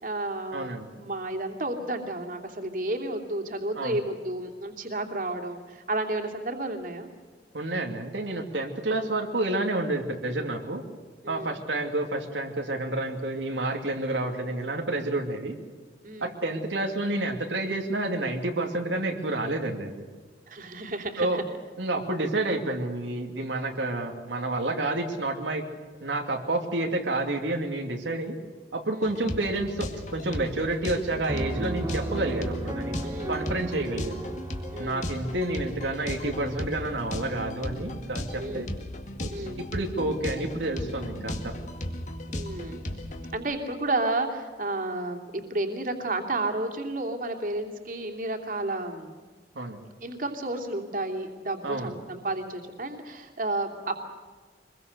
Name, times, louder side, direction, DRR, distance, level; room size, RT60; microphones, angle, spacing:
voice 1, 0.0-7.1 11.2-11.5 16.0-16.3 20.5-21.4 28.9-29.1 33.0-33.4 33.8-33.9 34.7-35.1 38.4-38.7 39.3-39.6 42.3-42.8 43.3-49.1 50.0-53.9, right 2 dB, 50° right, 3 dB, 2.9 m, -32 dB
voice 2, 0.5-0.8 3.8-4.0 7.5-10.8 11.3-15.6 16.2-20.1 21.2-21.4 21.8-25.6 26.0-28.4 28.7-33.0 33.3-34.2 34.8-38.7 39.2-41.5 49.5-49.8 51.6-51.9, right 2 dB, 90° right, 3 dB, 2.6 m, -29 dB
sound 1, 29.0-43.4, left 1 dB, 40° left, 2.1 m, -36 dB
Piano, 31.3-36.8, right 1 dB, 20° right, 1.0 m, -35 dB
24.5 x 22.0 x 6.8 m, 1.5 s
head